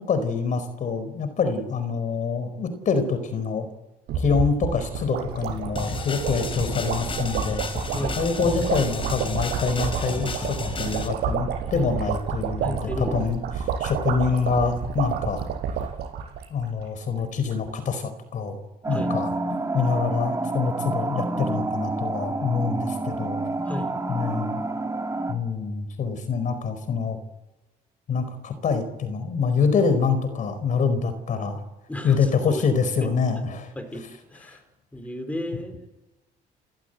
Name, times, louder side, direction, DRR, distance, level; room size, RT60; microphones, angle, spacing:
voice 1, 0.1-3.7 4.1-7.6 8.1-13.4 13.8-15.4 16.5-18.6 18.9-19.3 19.7-23.4 24.1-24.6 25.3-27.2 28.1-31.6 32.0-33.7, left 5 dB, 50° left, 11 dB, 4.6 m, -25 dB
sound 1, 4.1-16.8 17.1-17.2 17.4-17.7, right 7 dB, 70° right, 7.3 m, -30 dB
sound 2, 5.8-11.1, left 4 dB, 30° left, 4.3 m, -32 dB
voice 2, 12.6-13.2 18.9-19.1 23.7-24.0 31.9-32.6 33.0-33.1 33.8-34.6 34.9-35.9, left 1 dB, 10° left, 6 dB, 4.9 m, -33 dB
sound 3, 18.8-25.3, right 2 dB, 20° right, 2.9 m, -28 dB
29.5 x 15.5 x 8.1 m, 1.1 s
cardioid pair, 110°, 17 cm